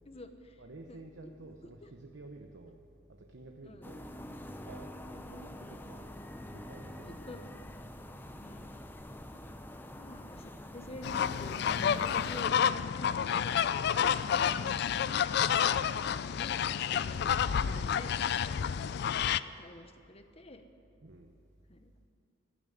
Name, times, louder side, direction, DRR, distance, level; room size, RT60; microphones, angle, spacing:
voice 1, 0.0-0.6 0.9-1.9 3.6-3.8 6.9-7.5 8.4-8.7 10.0-15.5 15.7-18.2 18.9-20.6 21.7-21.9, left 1 dB, 30° left, 8 dB, 0.9 m, -49 dB
voice 2, 0.6-2.8 3.1-4.1 4.6-6.1 6.5-7.4 19.1-19.4 21.0-21.3, right 2 dB, 65° right, 3 dB, 0.9 m, -51 dB
sound 1, 3.8-12.4, left 1 dB, 10° left, 0.6 m, -46 dB
sound 2, 11.0-19.4, left 8 dB, 55° left, 0.3 m, -29 dB
16.0 x 7.3 x 10.0 m, 2.6 s
head